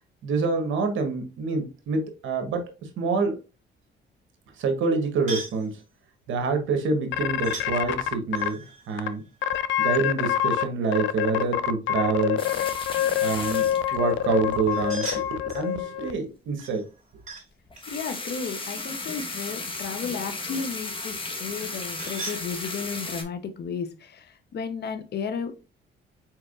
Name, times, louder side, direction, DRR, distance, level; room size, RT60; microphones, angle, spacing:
voice 1, 0.2-2.6 3.0-3.4 4.6-5.7 6.3-9.2 9.8-12.4 13.2-16.8, right 4 dB, 80° right, 1.2 m, -27 dB
sound 1, 5.3-5.7 7.4-7.7 8.3-10.1 14.7-15.7 16.6-17.5 17.8-19.7 21.5-22.4, right 3 dB, 40° right, 2.1 m, -40 dB
sound 2, 7.1-8.5 9.0-9.1 9.4-10.6 10.9-16.1, left 11 dB, 75° left, 0.5 m, -26 dB
sound 3, 12.4-14.9 17.7-23.2, left 3 dB, 25° left, 1.4 m, -35 dB
voice 2, 17.9-25.5, left 6 dB, 55° left, 0.9 m, -33 dB
4.6 x 4.4 x 2.4 m
cardioid pair, 90°, 20 cm